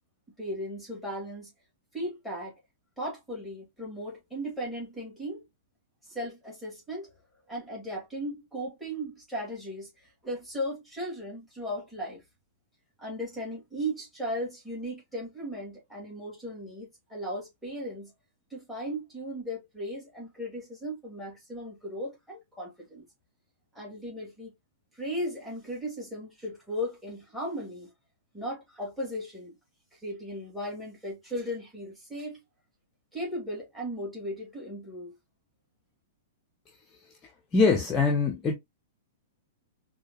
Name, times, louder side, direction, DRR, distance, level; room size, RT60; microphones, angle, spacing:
voice 1, 0.4-1.5 1.9-2.6 3.0-5.4 6.1-7.1 7.5-12.2 13.0-18.1 18.5-23.0 23.7-24.5 24.9-27.9 28.3-29.6 30.0-32.4 33.1-35.1, equal, ahead, 2.2 m, -36 dB
voice 2, 37.5-38.5, left 4 dB, 20° left, 0.8 m, -23 dB
4.7 x 2.3 x 2.8 m
figure-of-eight pair, 105°, 0 cm